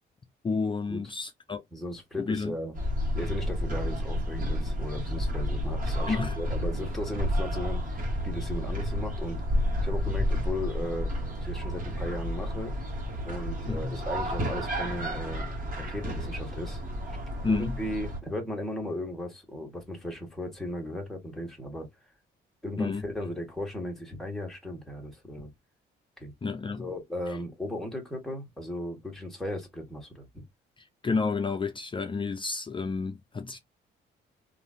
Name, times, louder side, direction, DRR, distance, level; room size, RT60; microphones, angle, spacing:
voice 1, 0.4-1.6 2.2-2.5 6.1-6.4 10.1-10.2 13.7-14.0 17.4-17.8 22.8-23.0 26.4-26.9 31.0-33.6, left 4 dB, 25° left, 0.5 m, -30 dB
voice 2, 1.7-2.7 3.1-9.4 9.8-11.1 11.4-12.7 13.2-15.4 15.8-16.8 17.1-17.2 17.5-21.9 22.6-25.5 26.2-26.3 26.7-30.4, left 1 dB, ahead, 1.6 m, -36 dB
sound 1, 2.8-18.2, equal, 45° right, 1.5 m, -31 dB
3.1 x 2.6 x 2.5 m
cardioid pair, 90°, 20 cm